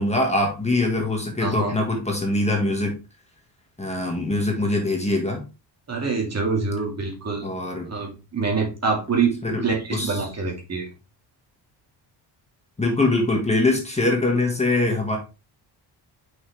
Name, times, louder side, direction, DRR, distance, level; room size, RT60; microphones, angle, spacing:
voice 1, 0.0-2.9 3.8-5.4 7.4-7.9 9.4-9.6 9.9-10.2 12.8-15.2, left 2 dB, 15° left, 1 dB, 1.7 m, -23 dB
voice 2, 1.4-1.8 5.9-7.5 7.9-9.3 9.6-10.9, right 4 dB, 35° right, 1 dB, 2.2 m, -25 dB
6.1 x 5.9 x 3.3 m, 0.29 s
cardioid pair, 130°, 45 cm